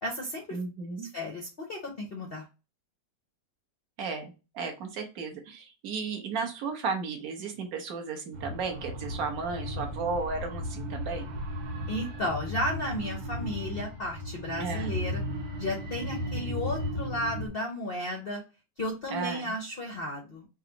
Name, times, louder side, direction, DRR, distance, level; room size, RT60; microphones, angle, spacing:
voice 1, 0.0-0.6 1.0-2.4 11.9-15.2 15.6-18.4 18.8-20.5, left 1 dB, 60° left, 1 dB, 0.6 m, -34 dB
voice 2, 0.5-1.1 4.0-11.3 14.6-14.9 19.1-19.5, right 5 dB, 55° right, 4 dB, 1.3 m, -34 dB
sound 1, 8.3-17.5, left 1 dB, 90° right, 1.7 m, -35 dB
3.9 x 2.4 x 3.8 m, 0.30 s
omnidirectional pair, 2.0 m